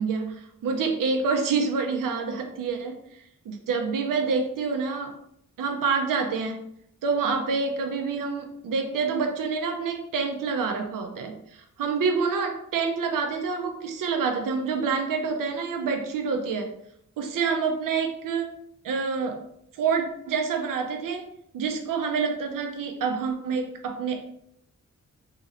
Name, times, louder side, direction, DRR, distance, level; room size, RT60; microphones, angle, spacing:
voice 1, 0.0-3.0 3.5-5.2 5.6-6.6 7.0-11.3 11.8-16.7 17.2-18.5 18.8-19.4 19.7-21.3 21.5-24.2, right 5 dB, 80° right, 4 dB, 0.5 m, -27 dB
2.9 x 2.8 x 2.5 m, 0.71 s
wide cardioid pair, 105°, 32 cm